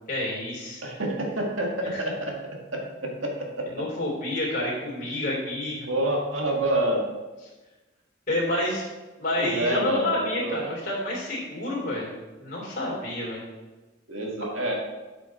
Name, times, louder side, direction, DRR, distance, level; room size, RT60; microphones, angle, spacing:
voice 1, 0.1-0.8 1.9-2.0 3.7-5.9 8.3-8.8 9.2-12.1 12.4-13.4, left 1 dB, 45° left, -6 dB, 3.1 m, -29 dB
voice 2, 0.8-2.3 3.2-3.3 5.9-7.0 9.3-10.6 14.1-14.7, right 1 dB, 85° right, -1 dB, 1.9 m, -27 dB
8.0 x 6.4 x 4.3 m, 1.2 s
head